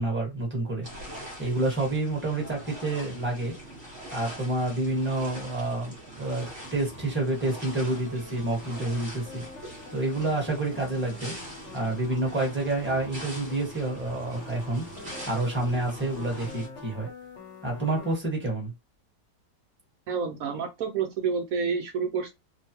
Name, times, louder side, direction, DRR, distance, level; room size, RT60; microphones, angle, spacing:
voice 1, 0.0-3.6 4.1-5.9 6.2-9.4 9.9-11.4 11.7-17.1 17.6-18.7, right 2 dB, 10° right, 1.1 m, -29 dB
sound 1, 0.8-16.7, right 1 dB, 30° right, 1.3 m, -43 dB
sound 2, 6.2-18.1, left 4 dB, 50° left, 1.1 m, -46 dB
voice 2, 20.1-22.3, right 5 dB, 70° right, 0.8 m, -29 dB
3.0 x 2.1 x 2.8 m
omnidirectional pair, 1.9 m